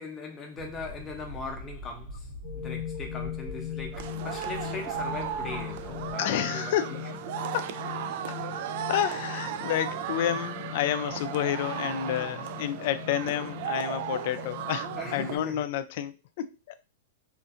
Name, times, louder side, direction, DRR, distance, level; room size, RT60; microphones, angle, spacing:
voice 1, 0.0-2.3 2.5-7.0 8.4-8.5 12.0-12.3 14.9-15.7, left 3 dB, 20° left, 0.8 m, -40 dB
sound 1, 0.5-6.1, left 1 dB, 75° right, 0.9 m, -43 dB
sound 2, 2.4-15.2, left 10 dB, 40° left, 1.1 m, -40 dB
sound 3, 3.9-15.4, right 9 dB, 55° right, 0.3 m, -35 dB
voice 2, 6.2-7.1 7.5-7.7 8.9-16.8, left 11 dB, 60° left, 0.3 m, -30 dB
2.5 x 2.4 x 2.6 m
hypercardioid pair, 130°, 0 cm